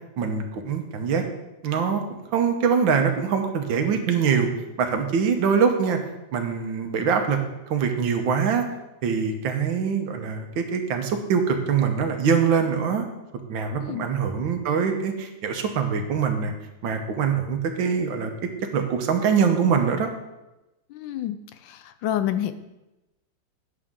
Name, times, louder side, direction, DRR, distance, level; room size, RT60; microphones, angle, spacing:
voice 1, 0.2-1.2 1.6-2.0 2.3-4.5 4.8-6.0 6.3-7.4 7.7-8.7 9.0-13.1 13.5-16.5 16.8-18.3 18.7-20.1, right 6 dB, 85° right, 5 dB, 1.7 m, -23 dB
voice 2, 20.9-21.4 21.6-22.5, left 11 dB, 80° left, 11 dB, 1.3 m, -28 dB
9.7 x 7.3 x 3.7 m, 0.99 s
omnidirectional pair, 2.1 m